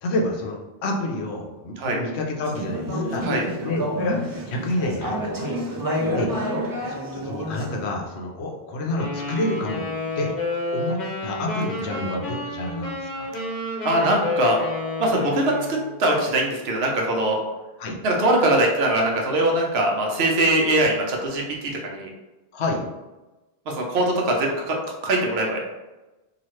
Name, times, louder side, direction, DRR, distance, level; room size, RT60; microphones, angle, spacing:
voice 1, 0.0-3.3 3.6-4.2 4.5-5.4 6.1-6.3 6.9-9.9 10.2-10.3 10.7-13.3 17.8-18.0 22.5-22.8, left 1 dB, 90° left, 1 dB, 0.9 m, -28 dB
Conversation / Chatter, 2.4-7.8, equal, 35° right, 0.3 m, -28 dB
Wind instrument woodwind instrument, 9.0-15.9, left 2 dB, 50° left, 0.8 m, -30 dB
voice 2, 13.8-14.6 15.0-17.4 18.0-21.4 21.8-22.1 23.8-24.8 25.0-25.7, right 1 dB, 75° right, 0 dB, 0.9 m, -21 dB
2.9 x 2.4 x 3.0 m, 1.1 s
omnidirectional pair, 1.1 m